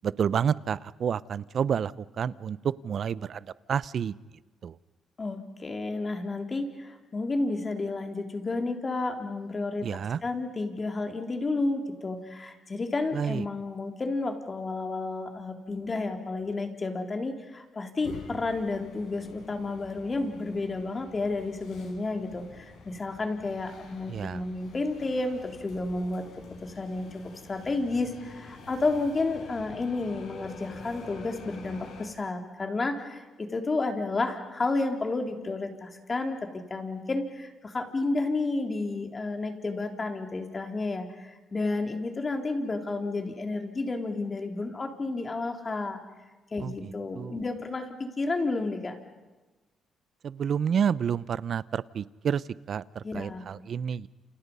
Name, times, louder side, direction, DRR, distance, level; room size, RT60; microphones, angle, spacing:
voice 1, 0.0-4.1 4.6-4.8 9.8-10.2 13.1-13.4 24.1-24.4 46.6-47.4 50.2-54.1, right 7 dB, 55° right, 19 dB, 0.7 m, -30 dB
voice 2, 5.2-26.2 26.6-27.2 27.5-36.4 36.7-46.0 46.5-49.0 53.0-53.5, left 3 dB, 30° left, 4 dB, 3.8 m, -31 dB
sound 1, 18.0-32.1, left 4 dB, 75° left, 6.3 m, -48 dB
29.5 x 28.5 x 5.6 m, 1.2 s
cardioid pair, 90°, 0 cm